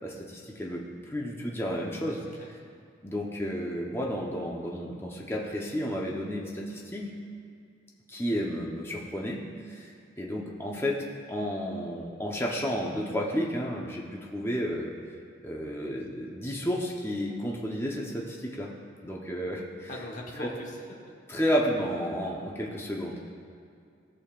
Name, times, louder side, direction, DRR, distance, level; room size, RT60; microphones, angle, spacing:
voice 1, 0.0-2.2 3.0-7.1 8.1-14.9 15.4-18.7 19.0-19.9 20.4-20.5 21.3-23.3, equal, 15° left, -2 dB, 0.9 m, -32 dB
voice 2, 2.0-2.5 19.9-20.8, left 1 dB, 40° left, -1 dB, 1.2 m, -41 dB
16.0 x 6.6 x 2.5 m, 2.4 s
head